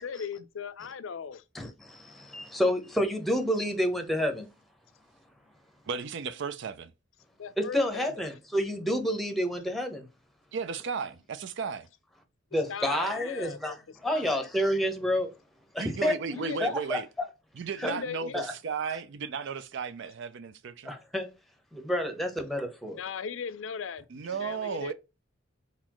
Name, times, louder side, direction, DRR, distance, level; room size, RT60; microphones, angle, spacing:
voice 1, 0.0-1.4 7.4-8.2 12.7-13.6 14.1-14.5 16.3-16.6 17.8-18.4 23.0-24.1 24.4-24.9, left 6 dB, 75° left, 0.5 m, -38 dB
voice 2, 1.5-4.5 7.6-10.1 12.5-15.3 15.7-16.1 16.6-17.0 17.8-17.9 18.3-18.5 20.8-21.3 21.7-23.0, equal, ahead, 0.9 m, -29 dB
voice 3, 5.9-6.9 10.5-11.9 15.8-17.1 17.6-20.9 24.1-24.9, right 5 dB, 65° right, 0.4 m, -34 dB
4.2 x 4.1 x 3.0 m
head